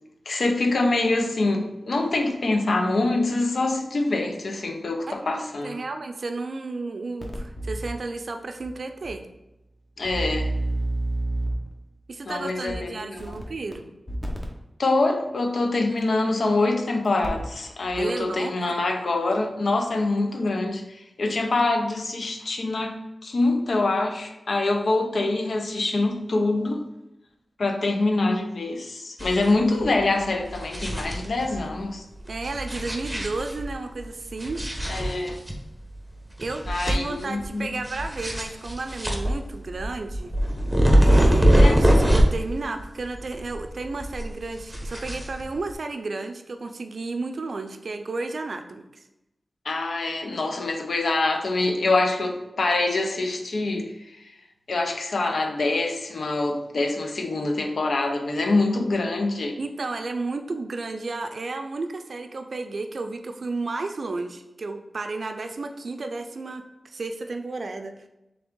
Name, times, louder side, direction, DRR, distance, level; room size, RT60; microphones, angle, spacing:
voice 1, 0.3-5.8 10.0-10.5 12.3-13.4 14.8-23.0 23.2-26.9 27.6-32.0 34.9-35.4 36.7-37.7 41.6-41.8 49.6-53.9 54.7-59.6, left 2 dB, 75° left, 4 dB, 0.5 m, -25 dB
voice 2, 5.1-9.3 12.1-13.9 18.0-18.8 32.3-34.6 36.4-40.3 41.0-49.0 59.6-68.1, right 3 dB, 70° right, 6 dB, 0.4 m, -33 dB
sound 1, 7.2-7.9 8.6-8.7 9.0-9.1 10.0-11.7 12.7-12.8 13.2-13.7 14.1-14.5 16.0-16.1 17.1-17.5 17.9-18.0, right 1 dB, 25° left, 0.9 m, -29 dB
sound 2, 29.2-29.6 29.8-29.9 30.4-31.6 32.4-33.7 34.4-35.6 35.9-36.0 36.4-37.4 37.8-42.5 42.8-43.8 44.0-45.7, equal, 5° right, 0.9 m, -22 dB
3.4 x 3.4 x 3.7 m, 0.93 s
cardioid pair, 55°, 0 cm